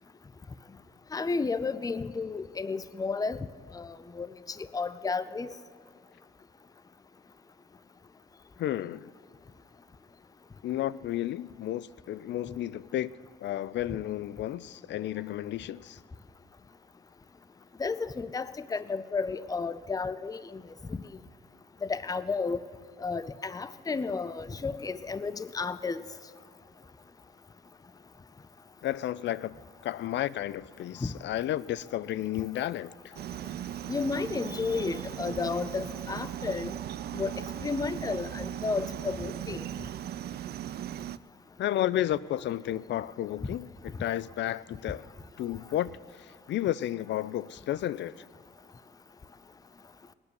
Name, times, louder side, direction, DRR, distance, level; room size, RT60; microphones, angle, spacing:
voice 1, 1.1-3.5 3.7-4.3 4.7-5.5 17.8-20.6 20.9-21.0 21.8-22.6 23.0-26.0 31.0-31.1 33.9-36.7 37.1-37.3 37.6-39.6, left 4 dB, 20° left, 0.6 m, -32 dB
voice 2, 8.6-9.1 10.6-13.1 13.4-16.0 28.8-29.6 29.8-33.1 41.6-45.1 45.4-48.2, left 13 dB, 65° left, 0.4 m, -32 dB
sound 1, 33.1-41.2, right 11 dB, 55° right, 0.4 m, -38 dB
19.5 x 9.8 x 6.7 m
cardioid pair, 90°, 20 cm